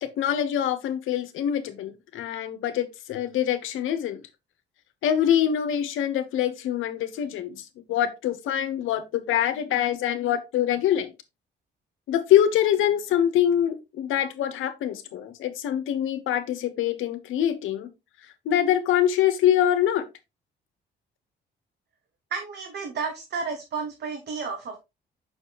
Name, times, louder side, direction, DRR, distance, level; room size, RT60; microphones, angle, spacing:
voice 1, 0.0-4.2 5.0-11.1 12.1-17.9 18.4-20.1, left 10 dB, 85° left, 1.2 m, -24 dB
voice 2, 22.3-24.8, right 5 dB, 55° right, 1.4 m, -32 dB
6.7 x 6.2 x 3.0 m
cardioid pair, 90°, 20 cm